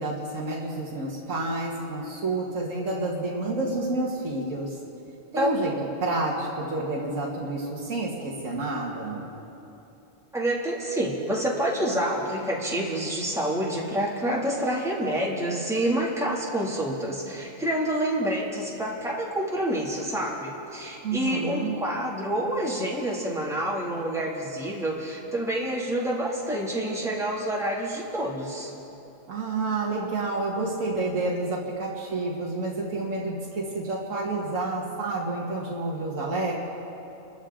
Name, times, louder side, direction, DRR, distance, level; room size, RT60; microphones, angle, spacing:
voice 1, 0.0-4.8 5.3-5.7 6.0-9.2 21.0-21.7 29.3-36.5, right 2 dB, 75° right, -3 dB, 2.0 m, -29 dB
voice 2, 10.3-28.7, right 1 dB, ahead, -5 dB, 2.3 m, -28 dB
28.0 x 13.0 x 3.8 m, 2.9 s
omnidirectional pair, 1.3 m